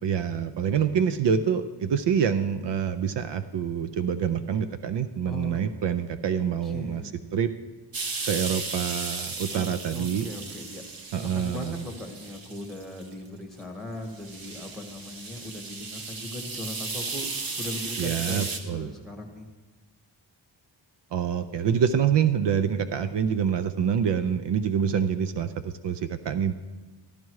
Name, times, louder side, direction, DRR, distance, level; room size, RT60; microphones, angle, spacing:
voice 1, 0.0-7.0 7.3-7.5 8.3-10.3 11.1-11.7 18.0-18.9 21.1-26.5, right 7 dB, 65° right, 11 dB, 0.6 m, -26 dB
voice 2, 5.3-5.6 6.6-7.2 9.5-10.8 11.1-17.3 17.6-19.5, left 1 dB, ahead, 2 dB, 1.7 m, -39 dB
sound 1, 7.9-13.1 13.6-13.7 14.1-18.6, right 4 dB, 50° right, 1.2 m, -35 dB
14.0 x 12.0 x 4.7 m, 1.3 s
wide cardioid pair, 155°, 45 cm